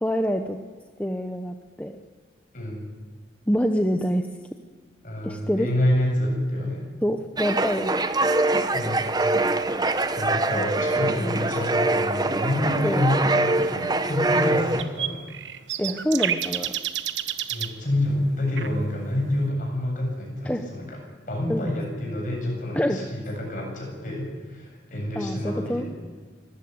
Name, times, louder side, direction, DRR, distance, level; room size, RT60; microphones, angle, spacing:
voice 1, 0.0-0.6 1.0-2.0 3.5-4.3 5.2-5.7 7.0-8.1 10.5-10.6 11.2-11.4 12.8-13.0 15.8-16.7 20.4-20.6 21.5-21.7 22.7-23.0 25.2-25.8, equal, 10° left, 5 dB, 0.9 m, -26 dB
voice 2, 5.0-6.9 8.7-9.2 10.1-15.2 17.5-21.0 21.3-25.9, left 1 dB, 45° left, 0 dB, 7.9 m, -28 dB
sound 1, 7.4-14.8, right 2 dB, 20° right, 0.9 m, -24 dB
sound 2, 14.8-17.7 18.6-18.7, right 10 dB, 80° right, 1.1 m, -29 dB
25.5 x 15.0 x 9.6 m, 1.5 s
head